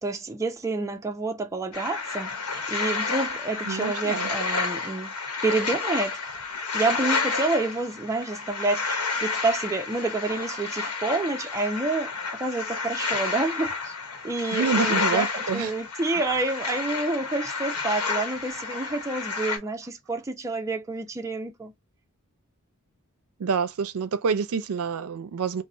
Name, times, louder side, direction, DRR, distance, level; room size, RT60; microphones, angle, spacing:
voice 1, 0.0-5.1 5.4-6.2 6.7-13.9 14.2-21.7, right 3 dB, 15° right, 0.3 m, -28 dB
sound 1, 1.7-19.6, left 4 dB, 85° left, 0.9 m, -30 dB
voice 2, 3.7-4.3 14.5-15.7 23.4-25.6, right 5 dB, 70° right, 0.5 m, -27 dB
4.0 x 2.0 x 2.5 m
head